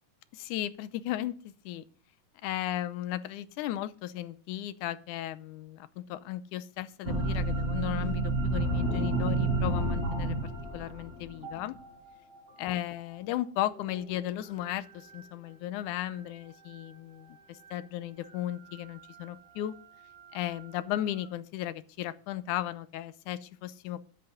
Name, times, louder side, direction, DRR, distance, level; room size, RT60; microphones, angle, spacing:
voice 1, 0.3-1.8 2.4-11.8 12.6-19.7 20.3-24.0, left 13 dB, 75° left, 16 dB, 2.1 m, -35 dB
sound 1, 7.0-12.5 13.7-14.7 15.1-15.2 17.7-17.8 18.2-21.3, right 2 dB, 15° right, 4.9 m, -32 dB
11.5 x 8.0 x 6.5 m, 0.43 s
omnidirectional pair, 3.7 m